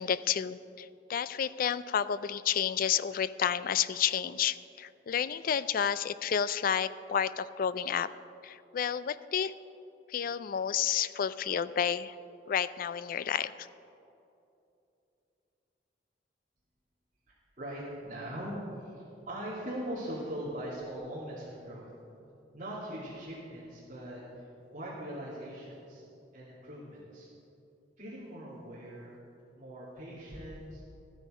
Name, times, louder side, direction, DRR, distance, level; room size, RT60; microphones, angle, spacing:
voice 1, 0.0-8.1 8.4-9.5 10.1-12.2 12.5-13.7, left 8 dB, 50° left, 15 dB, 0.3 m, -30 dB
voice 2, 17.3-21.9 22.5-26.0 26.3-27.3 28.0-29.2 29.5-30.8, right 1 dB, 45° right, -10 dB, 2.6 m, -41 dB
14.0 x 9.1 x 5.0 m, 2.8 s
head